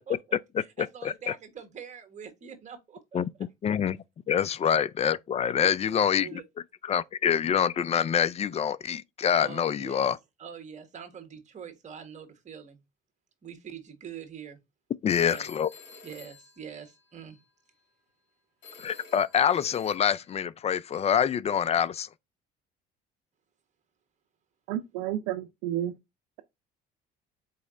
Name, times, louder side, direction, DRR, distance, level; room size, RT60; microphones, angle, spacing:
voice 1, 0.0-3.2 5.4-6.4 9.4-10.1 10.4-12.8 13.4-14.6 15.2-15.5 16.0-17.4, right 7 dB, 40° right, 1.4 m, -44 dB
voice 2, 3.6-4.0 4.3-6.3 6.8-10.2 15.0-15.7 18.8-22.1, left 8 dB, 35° left, 0.3 m, -26 dB
Telephone, 15.1-17.4 18.6-20.3, left 4 dB, 75° left, 1.8 m, -50 dB
voice 3, 24.7-25.9, right 12 dB, 90° right, 0.5 m, -31 dB
4.1 x 3.1 x 3.8 m
supercardioid pair, 80°, 20 cm